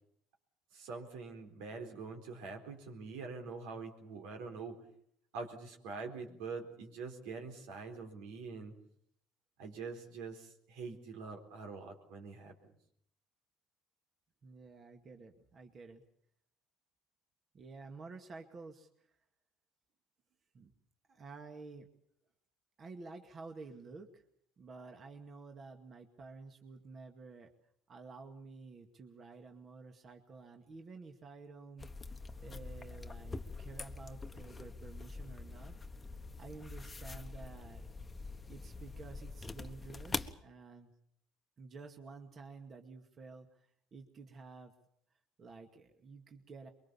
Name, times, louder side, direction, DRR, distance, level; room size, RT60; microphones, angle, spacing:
voice 1, 0.7-4.8 5.3-8.7 9.6-12.5, right 4 dB, 80° right, 4 dB, 4.3 m, -45 dB
voice 2, 14.4-16.0 17.5-19.2 20.5-20.7 21.1-21.9 22.8-24.2 24.6-27.5 27.9-32.1 32.4-35.7 36.4-37.9 38.5-40.9 41.6-44.7 45.4-46.7, right 4 dB, 40° right, 4 dB, 2.2 m, -51 dB
sound 1, 31.8-40.3, left 3 dB, 20° left, 1.2 m, -44 dB
23.5 x 23.0 x 7.1 m, 0.69 s
supercardioid pair, 100°, 0 cm